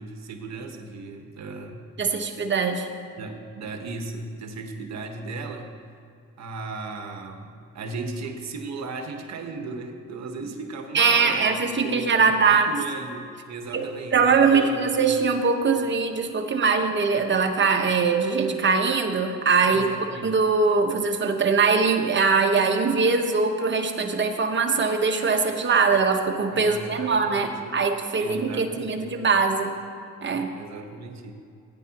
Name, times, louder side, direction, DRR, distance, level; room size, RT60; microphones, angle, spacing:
voice 1, 0.0-1.8 3.2-5.7 6.4-15.1 19.7-20.3 26.5-27.8 28.2-29.2 30.5-31.3, right 3 dB, 60° right, 4 dB, 1.4 m, -36 dB
voice 2, 2.0-2.9 10.9-12.7 13.7-13.8 14.1-19.8 20.2-29.7 30.2-30.5, right 5 dB, 40° right, 4 dB, 1.2 m, -22 dB
17.5 x 9.6 x 3.0 m, 2.4 s
cardioid pair, 90°, 30 cm